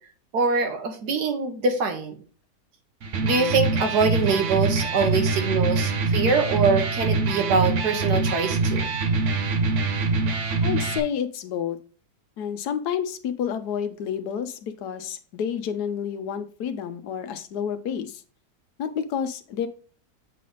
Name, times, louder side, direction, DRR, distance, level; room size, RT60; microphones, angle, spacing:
voice 1, 0.3-2.2 3.2-8.9, right 4 dB, 75° right, 5 dB, 1.6 m, -24 dB
Electric guitar, 3.0-11.0, right 3 dB, 55° right, 1.0 m, -24 dB
voice 2, 10.5-11.8 12.4-18.2 18.8-19.7, left 8 dB, 75° left, 10 dB, 1.2 m, -29 dB
7.6 x 3.4 x 3.9 m, 0.42 s
omnidirectional pair, 1.8 m